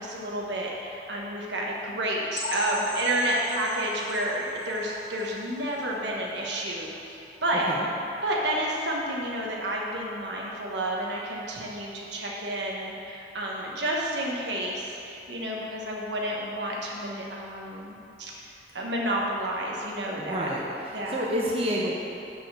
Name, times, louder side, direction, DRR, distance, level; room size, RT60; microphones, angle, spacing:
voice 1, 0.0-7.7 8.2-18.3 18.7-20.5 20.9-21.2, right 1 dB, 75° right, -3 dB, 1.3 m, -30 dB
sound 1, 2.4-6.0 6.4-6.5 6.9-7.0 7.5-7.6, equal, 35° left, 0.6 m, -38 dB
voice 2, 20.2-20.6 20.9-22.0, equal, 35° right, -4 dB, 0.9 m, -28 dB
6.7 x 5.4 x 6.2 m, 2.8 s
head